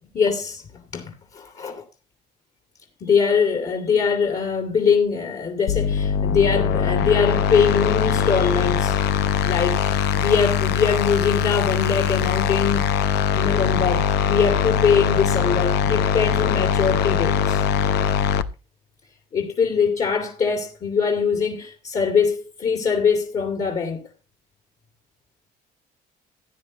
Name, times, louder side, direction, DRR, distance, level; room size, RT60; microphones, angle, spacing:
voice 1, 0.1-1.8 3.0-9.0 9.4-12.8 13.3-17.6 19.3-24.0, left 6 dB, 45° left, 2.5 m, -22 dB
sound 1, 5.7-18.4, left 7 dB, 80° left, 0.8 m, -21 dB
15.5 x 10.5 x 2.9 m
cardioid pair, 110°, 17 cm